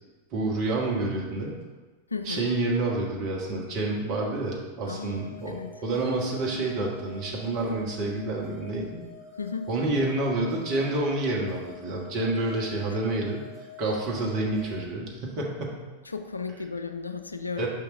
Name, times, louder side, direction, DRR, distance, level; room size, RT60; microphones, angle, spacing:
voice 1, 0.3-1.6 2.2-9.0 9.7-13.4 13.8-15.8 17.6-17.7, right 2 dB, 40° right, -2 dB, 1.4 m, -28 dB
voice 2, 2.1-2.5 4.9-5.7 9.4-9.7 16.0-17.7, left 5 dB, 80° left, 7 dB, 0.4 m, -34 dB
sound 1, 5.1-14.9, left 5 dB, 20° right, 1.1 m, -47 dB
5.3 x 3.8 x 5.2 m, 1.3 s
figure-of-eight pair, 90°, 0 cm